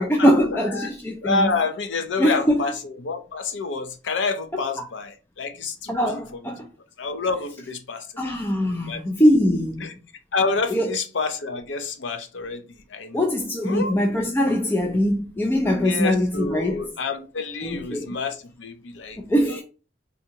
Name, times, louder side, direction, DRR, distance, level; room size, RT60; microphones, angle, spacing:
voice 1, 0.0-1.5 2.2-2.6 4.5-4.9 5.9-6.7 8.2-9.8 10.7-11.0 13.1-16.9 17.6-18.1 19.2-19.6, equal, 10° left, 0.3 m, -22 dB
voice 2, 1.2-2.7 3.0-6.0 7.0-8.1 8.7-9.0 9.8-9.9 10.3-12.6 12.9-13.2 13.6-14.0 15.8-19.2 19.4-19.5, left 4 dB, 75° left, 0.6 m, -28 dB
3.4 x 2.8 x 2.7 m
head